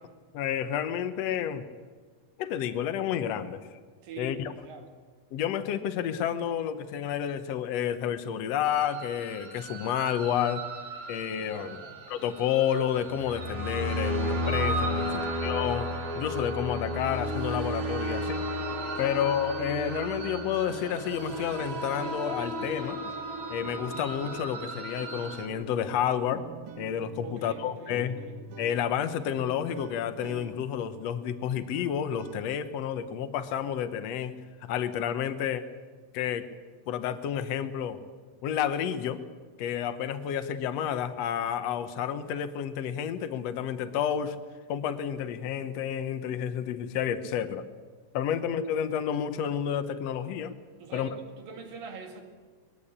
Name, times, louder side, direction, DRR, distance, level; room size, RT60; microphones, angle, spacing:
voice 1, 0.3-1.7 2.4-3.6 4.2-4.5 5.3-10.6 11.1-11.8 12.1-15.9 16.1-18.4 19.0-23.0 23.5-26.4 26.8-28.2 28.6-34.3 34.7-35.6 36.1-36.5 36.9-38.0 38.4-39.2 39.6-44.3 44.7-47.6 48.1-50.5 50.9-51.1, left 9 dB, 75° left, 11 dB, 1.5 m, -30 dB
voice 2, 4.0-4.9 11.5-12.0 15.0-15.4 19.0-19.2 27.2-28.4 50.8-52.2, right 3 dB, 70° right, 3 dB, 4.0 m, -44 dB
sound 1, 8.7-25.5, equal, 45° right, 3.0 m, -34 dB
sound 2, 20.1-32.4, right 5 dB, 90° right, 1.2 m, -47 dB
21.5 x 15.5 x 8.6 m, 1.5 s
omnidirectional pair, 4.2 m